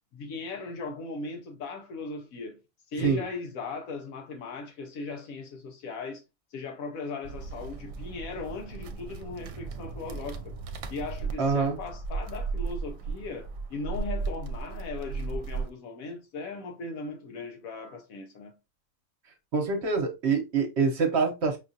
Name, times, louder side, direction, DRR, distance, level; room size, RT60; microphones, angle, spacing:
voice 1, 0.1-2.6 2.9-6.2 6.5-10.5 10.9-18.6, left 3 dB, 80° left, 1.1 m, -38 dB
sound 1, 7.2-15.7, right 4 dB, 80° right, 1.0 m, -36 dB
voice 2, 11.4-11.8 19.5-21.6, right 5 dB, 55° right, 1.1 m, -25 dB
5.1 x 2.4 x 2.6 m
omnidirectional pair, 1.4 m